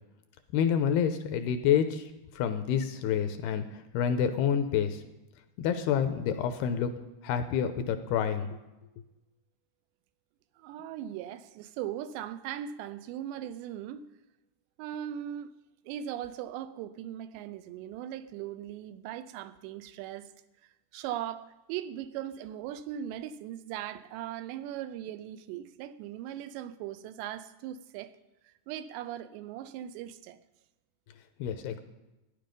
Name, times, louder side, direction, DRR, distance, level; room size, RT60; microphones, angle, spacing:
voice 1, 0.5-5.0 5.6-6.9 7.2-8.6 31.4-31.8, left 8 dB, 80° left, 2.4 m, -28 dB
voice 2, 10.6-14.0 14.8-15.5 15.9-20.3 20.9-28.1 28.7-30.4, right 11 dB, 90° right, 2.9 m, -39 dB
13.5 x 10.0 x 5.2 m
omnidirectional pair, 4.9 m